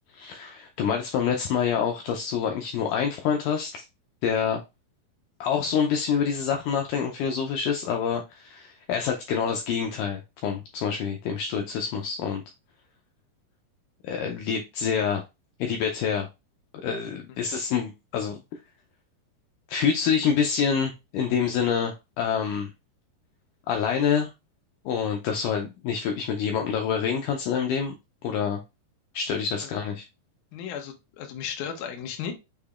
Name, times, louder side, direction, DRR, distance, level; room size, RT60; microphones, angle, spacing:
voice 1, 0.1-3.8 4.2-4.6 5.4-12.4 14.0-15.2 15.6-16.3 16.8-18.6 19.7-22.7 23.7-24.3 24.9-27.9 28.2-28.6 29.1-30.1, left 7 dB, 85° left, 3 dB, 1.8 m, -27 dB
voice 2, 30.5-32.3, left 8 dB, 70° left, 3 dB, 2.1 m, -35 dB
6.6 x 2.8 x 2.4 m, 0.25 s
omnidirectional pair, 4.3 m